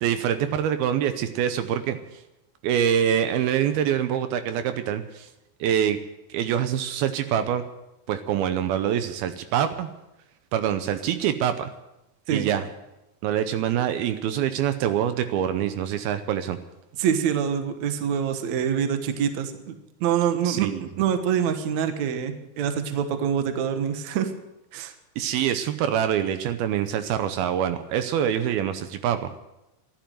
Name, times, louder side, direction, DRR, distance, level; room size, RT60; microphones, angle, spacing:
voice 1, 0.0-2.0 2.6-5.3 5.6-6.0 6.3-7.6 8.1-9.9 10.5-11.7 12.3-12.7 13.2-16.6 20.4-20.8 25.2-29.4, right 9 dB, 80° right, 10 dB, 2.6 m, -25 dB
voice 2, 17.0-19.7 20.0-24.3 24.7-24.9, right 8 dB, 60° right, 8 dB, 2.1 m, -25 dB
14.5 x 12.0 x 7.6 m, 0.94 s
omnidirectional pair, 4.5 m